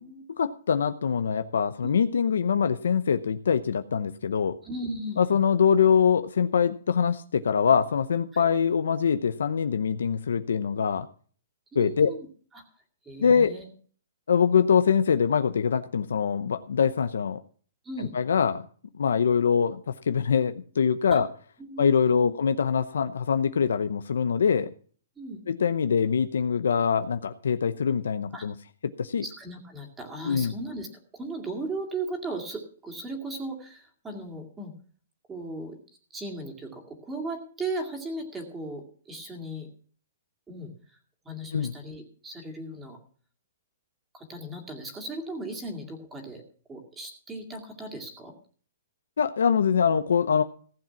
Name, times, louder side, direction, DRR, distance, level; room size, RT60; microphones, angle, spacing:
voice 1, 0.4-4.6 5.2-11.1 11.7-12.1 13.2-13.5 14.3-17.4 18.1-18.6 19.0-21.3 21.8-24.7 25.5-28.5 29.0-29.2 30.2-30.5 41.5-41.7 49.2-50.4, left 7 dB, 85° left, 10 dB, 0.8 m, -23 dB
voice 2, 4.6-5.4 8.3-8.4 11.7-12.3 12.5-12.6 13.0-13.7 17.8-18.1 21.1-21.2 21.6-22.3 25.2-25.4 28.3-28.5 29.2-30.9 31.1-34.7 35.3-35.8 36.1-39.7 40.5-41.0 41.2-43.0 44.1-46.4 46.7-48.3, right 2 dB, 10° right, 1 dB, 2.2 m, -37 dB
15.5 x 7.6 x 5.8 m, 0.44 s
hypercardioid pair, 160°, 0 cm